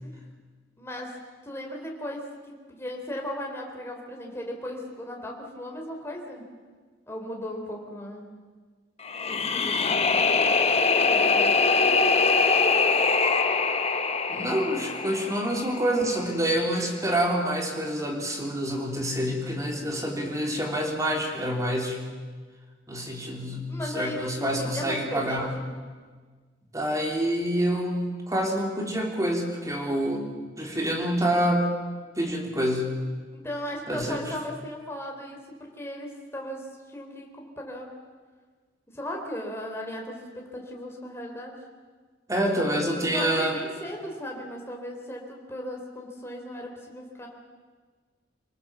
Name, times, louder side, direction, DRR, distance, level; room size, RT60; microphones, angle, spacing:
voice 1, 0.8-1.1 1.4-2.3 2.7-6.4 7.1-8.3 9.2-10.2 11.0-11.5 23.7-25.7 33.3-36.7 36.9-37.9 38.9-41.6 43.1-47.3, left 1 dB, 15° left, 0 dB, 3.8 m, -36 dB
sound 1, 9.0-16.1, left 4 dB, 35° left, 1.3 m, -23 dB
voice 2, 14.3-22.0 22.9-25.5 26.7-30.3 30.6-31.7 32.2-33.0 33.9-34.2 42.3-43.6, equal, 15° right, 1 dB, 3.5 m, -27 dB
26.5 x 18.5 x 7.5 m, 1.5 s
head